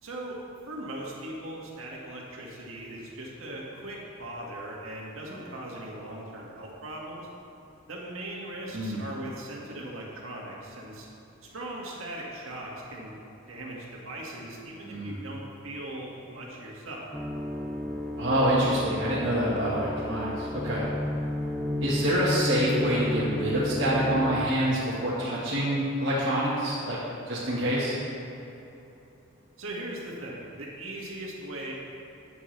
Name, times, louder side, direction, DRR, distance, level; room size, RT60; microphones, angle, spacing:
voice 1, 0.0-0.4 0.7-7.3 7.9-11.1 11.4-13.2 13.5-17.1 29.6-31.7, right 1 dB, 80° right, -3 dB, 1.9 m, -39 dB
voice 2, 14.8-15.1 18.2-20.9 21.8-27.0 27.3-27.9, right 1 dB, 60° right, -9 dB, 1.6 m, -26 dB
sound 1, 17.1-24.5, left 1 dB, 5° left, 0.5 m, -32 dB
10.5 x 9.1 x 3.3 m, 2.9 s
head